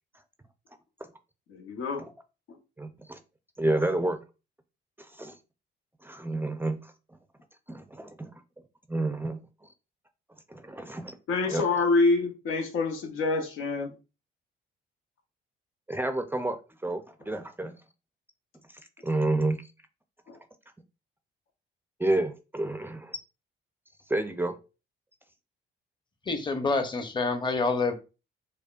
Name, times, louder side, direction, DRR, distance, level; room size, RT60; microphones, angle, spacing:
voice 1, 1.5-2.1 2.5-2.6 11.3-14.0 20.3-20.4, left 3 dB, 85° left, 3 dB, 0.8 m, -26 dB
voice 2, 2.8-3.2 3.6-4.2 5.0-5.3 6.0-6.9 7.7-8.4 8.9-9.4 10.5-11.1 11.5-11.6 15.9-16.6 16.8-17.7 19.0-19.6 22.0-23.2 24.1-24.5, right 2 dB, 10° right, 7 dB, 0.4 m, -29 dB
voice 3, 26.3-27.9, left 3 dB, 25° left, 6 dB, 0.7 m, -27 dB
5.0 x 2.1 x 2.4 m, 0.31 s
cardioid pair, 90°, 20 cm